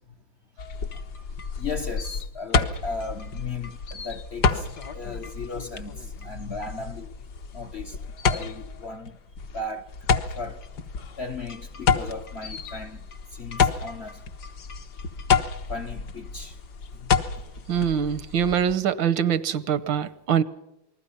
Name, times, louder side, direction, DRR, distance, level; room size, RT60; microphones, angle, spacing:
sound 1, 0.6-18.7, left 5 dB, 60° left, 1.8 m, -29 dB
voice 1, 1.6-7.1 7.5-8.0 8.2-9.2 9.5-10.0 10.4-10.6 11.2-13.0 13.3-14.2 15.7-16.6 17.0-17.1, left 3 dB, 45° left, 0.9 m, -36 dB
voice 2, 17.7-20.4, right 8 dB, 80° right, 1.7 m, -24 dB
28.0 x 20.5 x 5.6 m
omnidirectional pair, 2.1 m